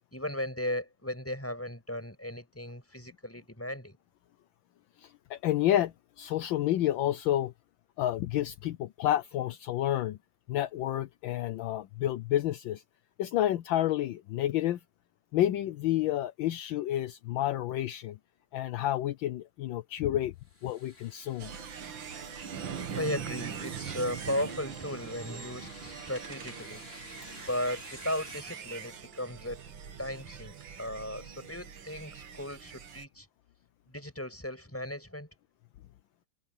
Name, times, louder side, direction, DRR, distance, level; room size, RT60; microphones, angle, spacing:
voice 1, 0.1-4.0 22.9-26.8 27.5-29.6 30.0-33.3 33.9-35.3, left 1 dB, 5° left, 6.2 m, -36 dB
voice 2, 5.0-7.5 8.0-10.2 10.5-12.8 13.2-14.8 15.3-18.2 18.5-20.3 20.6-21.5, left 13 dB, 75° left, 1.4 m, -30 dB
sound 1, 20.4-28.4, left 2 dB, 30° left, 4.5 m, -52 dB
sound 2, 21.4-33.1, right 7 dB, 70° right, 2.3 m, -42 dB
omnidirectional pair, 2.2 m